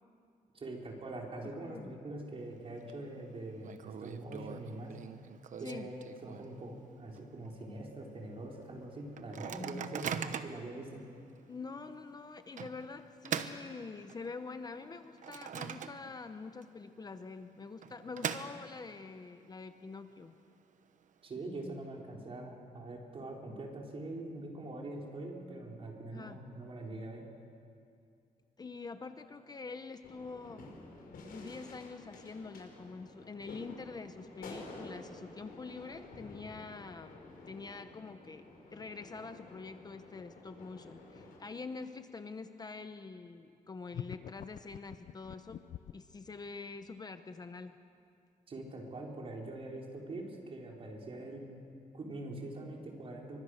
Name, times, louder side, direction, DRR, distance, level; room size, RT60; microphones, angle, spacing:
voice 1, 0.5-5.0 5.6-11.0 21.2-27.3 48.5-51.5 51.9-53.4, right 2 dB, 40° right, 0 dB, 4.5 m, -43 dB
voice 2, 1.6-1.9 5.6-5.9 11.5-20.3 26.1-26.4 28.6-45.6 45.9-47.8, left 4 dB, 25° left, 9 dB, 0.8 m, -46 dB
Microwave oven, 2.4-2.9 3.2-3.3 3.6-6.7 7.1-7.2 7.5-7.8 8.3-8.4 9.2-10.7 11.3-11.4 12.6-14.4 14.8-16.3 16.6-16.7 17.6-19.0, right 8 dB, 60° right, 1.1 m, -41 dB
sound 1, 30.0-41.4, left 2 dB, 85° left, 5.8 m, -51 dB
sound 2, 43.9-46.1, left 10 dB, 65° left, 0.7 m, -45 dB
30.0 x 24.5 x 6.6 m, 2.5 s
wide cardioid pair, 140°, 14 cm